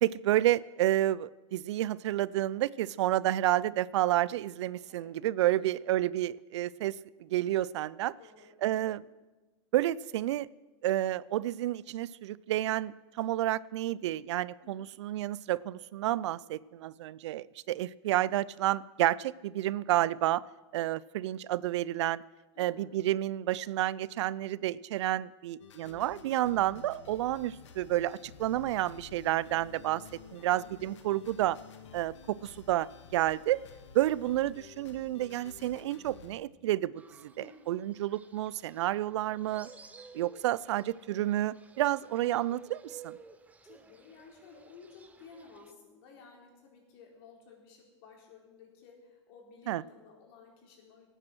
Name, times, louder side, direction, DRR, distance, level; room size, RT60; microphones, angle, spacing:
voice 1, 0.0-8.1 8.6-9.0 9.7-10.5 10.8-20.4 20.7-22.2 22.6-30.0 30.3-31.6 31.9-33.6 33.9-39.7 40.1-43.2 49.7-49.8, right 14 dB, 70° right, 21 dB, 0.4 m, -30 dB
voice 2, 4.9-5.2 8.1-8.6 9.0-9.1 14.6-14.9 22.5-22.9 30.4-30.6 37.4-37.6 43.6-51.1, left 5 dB, 55° left, 0 dB, 4.2 m, -55 dB
sound 1, 25.6-36.3, left 6 dB, 75° left, 1.6 m, -52 dB
Fowl, 37.0-45.7, right 5 dB, 10° right, 0.7 m, -55 dB
17.5 x 9.1 x 6.2 m, 1.2 s
hypercardioid pair, 140°, 15 cm